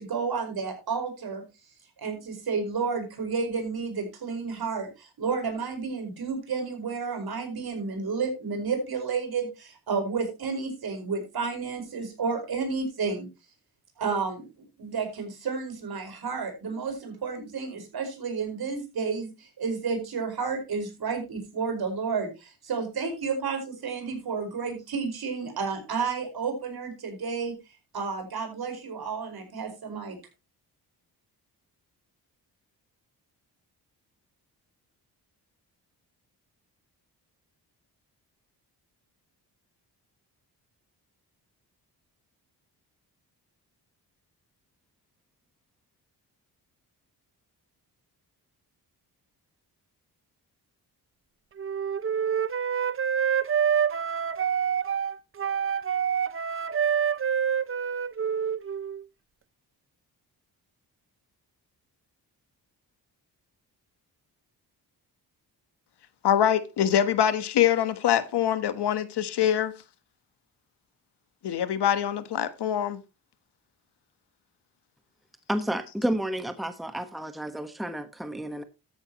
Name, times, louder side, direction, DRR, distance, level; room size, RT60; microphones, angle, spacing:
voice 1, 0.0-1.4 2.0-13.3 14.0-14.5 14.8-27.5 27.9-30.2, right 5 dB, 65° right, 5.1 m, -31 dB
Wind instrument woodwind instrument, 51.6-59.0, right 8 dB, 35° right, 0.7 m, -27 dB
voice 2, 66.2-69.7 71.4-73.0, left 10 dB, 85° left, 1.3 m, -24 dB
voice 3, 75.5-78.6, right 1 dB, ahead, 1.2 m, -31 dB
13.0 x 9.8 x 3.0 m
cardioid pair, 100°, 39 cm